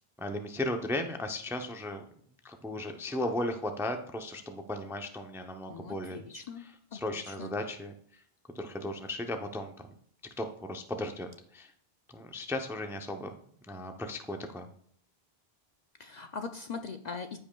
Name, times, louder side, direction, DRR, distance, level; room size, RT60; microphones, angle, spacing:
voice 1, 0.2-2.0 2.4-7.9 8.5-9.7 10.4-11.7 12.1-13.3 13.7-14.7, left 1 dB, 5° right, 5 dB, 0.4 m, -36 dB
voice 2, 5.7-6.6 6.9-7.0 7.4-7.5 16.0-17.4, left 5 dB, 55° left, 6 dB, 0.5 m, -40 dB
14.5 x 5.2 x 2.3 m, 0.62 s
omnidirectional pair, 1.0 m